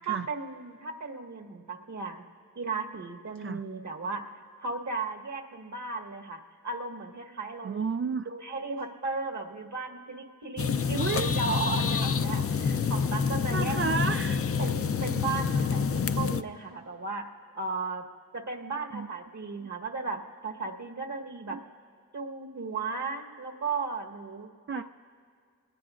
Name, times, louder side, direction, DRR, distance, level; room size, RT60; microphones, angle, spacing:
voice 1, 0.0-2.2 2.6-4.3 4.6-7.9 8.3-13.8 14.6-17.3 17.5-18.0 18.3-21.6 22.1-24.8, right 4 dB, 60° right, 3 dB, 1.9 m, -35 dB
voice 2, 7.6-8.3 10.9-11.3 13.5-14.4 18.9-19.1 21.5-21.6 24.7-24.8, right 5 dB, 40° right, 8 dB, 0.4 m, -31 dB
sound 1, 10.6-16.4, left 6 dB, 45° left, 0.6 m, -27 dB
28.5 x 19.5 x 2.5 m, 2.2 s
cardioid pair, 55°, 32 cm